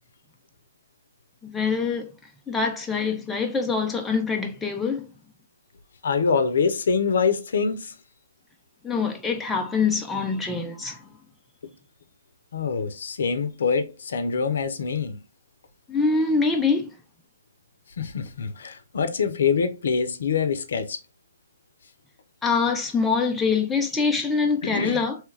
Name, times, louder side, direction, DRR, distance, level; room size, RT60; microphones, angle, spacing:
voice 1, 1.4-2.1 2.5-5.1 8.8-11.0 15.9-16.9 22.4-25.2, left 4 dB, 5° left, 0.4 m, -24 dB
voice 2, 6.0-7.9 12.5-15.2 18.0-21.0 24.6-25.0, left 5 dB, 70° left, 0.6 m, -25 dB
3.1 x 2.3 x 3.2 m
hypercardioid pair, 145°, 0 cm